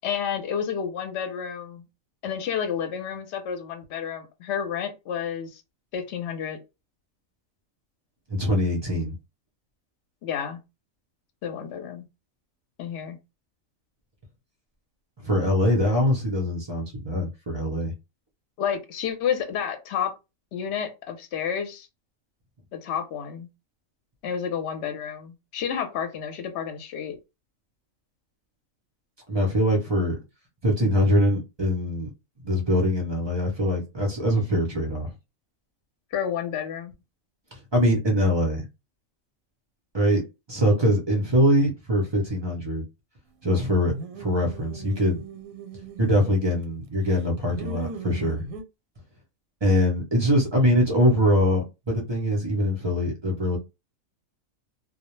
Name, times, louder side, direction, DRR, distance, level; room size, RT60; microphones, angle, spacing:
voice 1, 0.0-1.8 2.2-5.6 5.9-6.6 10.2-10.6 11.4-12.0 12.8-13.2 18.6-20.1 20.5-21.9 22.7-23.5 24.2-27.2 36.1-36.9, left 8 dB, 60° left, 0.8 m, -30 dB
voice 2, 8.3-9.2 15.2-17.9 29.3-30.2 30.6-32.1 32.4-35.1 37.5-38.7 39.9-40.2 40.5-42.8 43.4-45.2 46.0-48.4 49.6-53.6, equal, 40° right, 0.3 m, -23 dB
sound 1, 43.9-46.7 47.1-48.6, right 5 dB, 85° right, 1.0 m, -39 dB
2.2 x 2.0 x 3.0 m
omnidirectional pair, 1.4 m